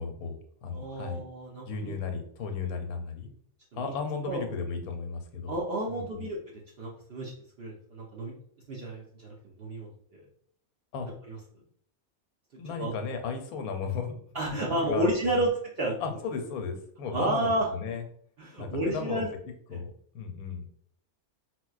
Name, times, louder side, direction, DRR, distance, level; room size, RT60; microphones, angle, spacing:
voice 1, 0.0-1.2 1.7-3.3 3.8-5.5 5.9-6.3 10.9-11.1 12.6-14.2 14.7-15.4 16.0-18.0 18.6-19.3 19.7-20.7, left 5 dB, 85° left, 5 dB, 1.1 m, -35 dB
voice 2, 0.7-1.9 3.7-3.9 4.2-4.4 5.5-7.3 7.6-8.3 8.7-10.2 11.3-11.4 12.8-12.9 14.3-15.9 17.1-17.7 18.4-19.3 19.7-19.8, right 1 dB, 65° right, -3 dB, 0.6 m, -31 dB
4.3 x 2.1 x 2.3 m, 0.62 s
omnidirectional pair, 1.5 m